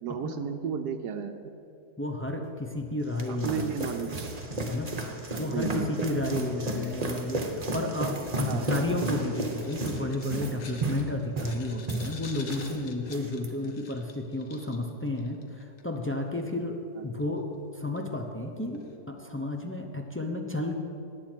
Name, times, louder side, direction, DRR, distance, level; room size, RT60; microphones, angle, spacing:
voice 1, 0.0-1.3 3.3-4.3 5.5-5.9 8.4-8.7 17.0-17.1, right 7 dB, 90° right, 5 dB, 1.3 m, -33 dB
voice 2, 2.0-3.7 4.7-4.9 5.4-16.8 17.0-17.5 17.7-20.8, left 2 dB, 20° left, 2 dB, 0.3 m, -32 dB
sound 1, 2.8-12.8 13.1-13.5, right 2 dB, 30° right, 0.9 m, -33 dB
sound 2, 9.0-16.0 17.2-17.3 17.9-18.2 18.7-19.0, left 5 dB, 55° left, 1.3 m, -48 dB
18.5 x 8.4 x 4.5 m, 2.6 s
omnidirectional pair, 1.7 m